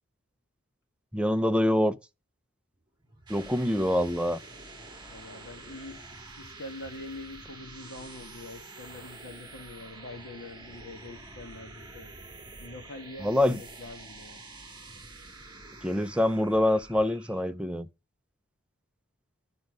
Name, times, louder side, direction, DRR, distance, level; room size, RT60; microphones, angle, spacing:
voice 1, 1.1-2.0 3.3-4.4 13.2-13.6 15.8-17.9, left 1 dB, 5° right, 0.5 m, -25 dB
sound 1, 3.0-17.5, right 3 dB, 20° right, 1.9 m, -47 dB
voice 2, 5.1-6.0 6.4-12.1 12.6-14.4, left 2 dB, 60° left, 1.5 m, -44 dB
9.8 x 5.3 x 5.0 m
head